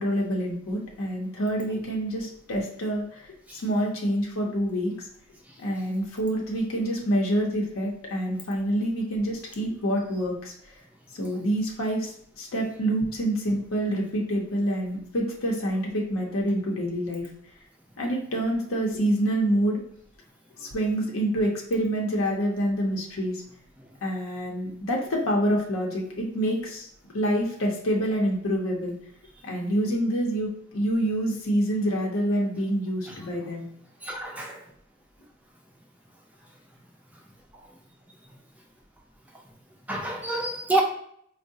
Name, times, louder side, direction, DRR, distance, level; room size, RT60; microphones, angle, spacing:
voice 1, 0.0-5.1 5.6-10.8 11.1-17.3 18.0-19.8 20.6-23.4 24.0-26.9 27.1-28.9 29.4-33.7, equal, 80° left, -1 dB, 0.6 m, -27 dB
voice 2, 34.0-34.6 39.9-40.8, right 2 dB, 5° right, 0 dB, 0.4 m, -28 dB
4.4 x 2.0 x 2.6 m, 0.67 s
head